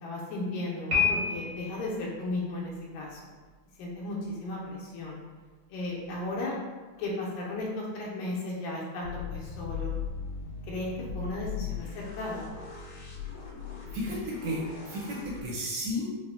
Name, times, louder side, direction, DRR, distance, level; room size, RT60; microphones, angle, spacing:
voice 1, 0.0-3.2 3.8-5.2 5.7-6.5 7.0-9.9 10.7-12.4, left 2 dB, 80° left, -4 dB, 2.1 m, -35 dB
Piano, 0.9-1.9, left 5 dB, 55° right, 0.9 m, -27 dB
sound 1, 9.0-15.5, left 6 dB, 60° left, 2.3 m, -39 dB
voice 2, 13.9-16.1, equal, 75° right, -4 dB, 1.7 m, -33 dB
5.5 x 2.1 x 2.4 m, 1.3 s
omnidirectional pair, 3.3 m